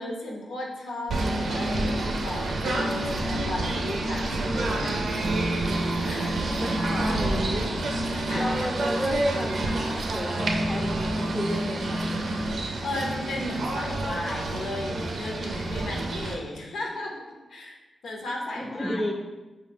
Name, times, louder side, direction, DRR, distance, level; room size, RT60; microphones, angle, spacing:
voice 1, 0.0-2.0 2.2-5.3 6.1-6.4 8.3-8.7 12.6-17.1 17.5-17.8 18.0-19.1, left 1 dB, 90° left, -1 dB, 0.8 m, -35 dB
Singing / Bird, 1.1-16.3, right 1 dB, 70° right, 0.5 m, -28 dB
voice 2, 6.4-12.6 18.6-19.1, equal, 5° left, 0 dB, 0.6 m, -33 dB
4.7 x 2.5 x 3.4 m, 1.2 s
cardioid pair, 90°, 0 cm